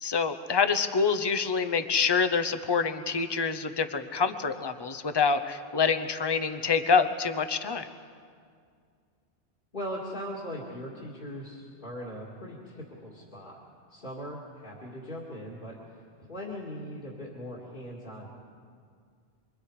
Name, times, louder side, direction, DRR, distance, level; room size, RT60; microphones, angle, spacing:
voice 1, 0.0-7.9, left 5 dB, 25° left, 9 dB, 0.8 m, -26 dB
voice 2, 9.7-13.6 13.9-18.3, equal, 50° left, -5 dB, 2.6 m, -40 dB
28.0 x 23.0 x 5.0 m, 2.2 s
omnidirectional pair, 1.1 m